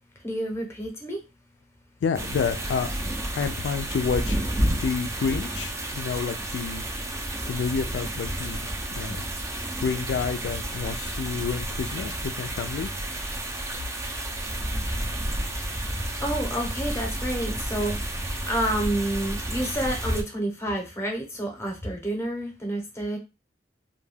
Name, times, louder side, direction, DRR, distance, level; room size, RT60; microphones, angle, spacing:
voice 1, 0.2-1.2 16.2-23.2, right 1 dB, 15° left, 0.7 m, -29 dB
voice 2, 2.0-2.9 3.3-6.8 7.5-8.7 9.0-12.9, left 6 dB, 75° left, 0.3 m, -29 dB
sound 1, 2.1-20.2, right 1 dB, 15° right, 0.4 m, -31 dB
2.3 x 2.2 x 3.2 m
head